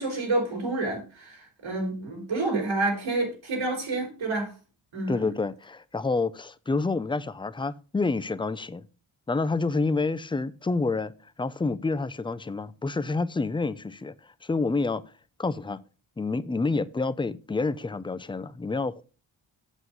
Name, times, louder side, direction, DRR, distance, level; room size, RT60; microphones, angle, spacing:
voice 1, 0.0-4.5 4.9-5.3, right 2 dB, 90° right, 3.9 m, -29 dB
voice 2, 5.1-8.8 9.3-11.1 11.4-14.1 14.4-15.0 15.4-15.8 16.2-19.0, left 3 dB, 10° left, 0.3 m, -28 dB
8.1 x 7.5 x 3.8 m
wide cardioid pair, 155°, 46 cm